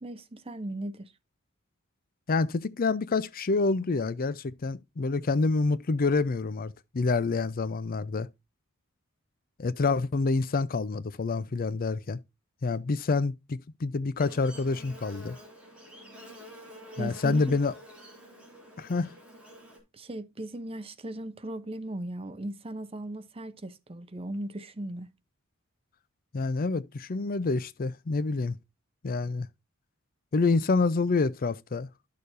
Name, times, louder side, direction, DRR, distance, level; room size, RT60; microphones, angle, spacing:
voice 1, 0.0-1.1 17.0-17.6 19.9-25.1, right 1 dB, 25° right, 0.7 m, -37 dB
voice 2, 2.3-8.3 9.6-12.2 12.6-15.4 17.0-17.7 18.8-19.1 26.3-28.6 29.0-29.5 30.3-31.9, left 3 dB, 45° left, 0.5 m, -27 dB
Buzz, 14.2-19.8, equal, 5° right, 3.6 m, -49 dB
12.5 x 6.6 x 2.6 m
head